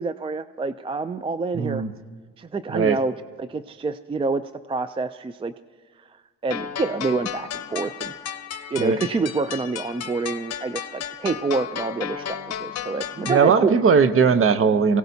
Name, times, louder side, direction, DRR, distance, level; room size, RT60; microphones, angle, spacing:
voice 1, 0.0-1.8 2.4-3.1 3.4-4.4 4.7-5.5 6.4-8.1 8.7-13.8, right 4 dB, 20° right, 12 dB, 0.4 m, -27 dB
voice 2, 1.5-1.9 2.7-3.0 8.8-9.0 13.2-15.0, right 5 dB, 45° right, 12 dB, 0.8 m, -19 dB
sound 1, 6.5-13.5, left 9 dB, 55° left, 0.8 m, -34 dB
24.0 x 17.0 x 2.7 m, 1.5 s
cardioid pair, 90°, 30 cm